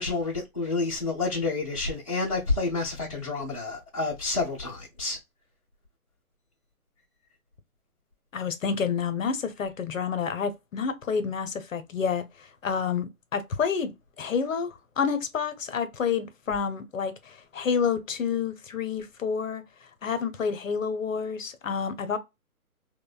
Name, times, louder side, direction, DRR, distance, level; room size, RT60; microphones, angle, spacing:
voice 1, 0.0-5.2, left 3 dB, 25° left, 0.4 m, -29 dB
voice 2, 8.3-13.9 14.2-19.6 20.0-22.2, left 6 dB, 60° left, 0.7 m, -29 dB
2.6 x 2.1 x 2.3 m
figure-of-eight pair, 145°, 44 cm